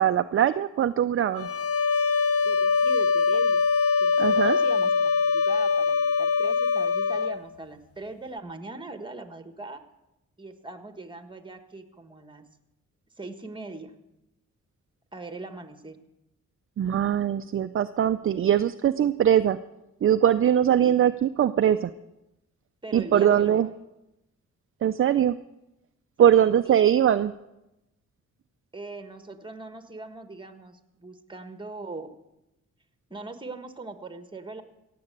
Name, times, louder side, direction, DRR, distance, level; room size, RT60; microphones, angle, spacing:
voice 1, 0.0-1.5 4.2-4.6 16.8-19.6 20.0-21.9 22.9-23.7 24.8-25.4 26.2-27.3, right 10 dB, 45° right, 10 dB, 0.5 m, -21 dB
sound 1, 1.4-7.4, left 5 dB, 50° left, 0.6 m, -23 dB
voice 2, 2.4-3.6 4.0-9.8 10.4-12.4 13.2-13.9 15.1-16.0 20.8-21.1 22.8-23.7 26.2-26.8 28.7-32.1 33.1-34.6, right 3 dB, 15° right, 8 dB, 1.5 m, -41 dB
17.0 x 7.7 x 7.9 m, 0.93 s
cardioid pair, 85°, 30 cm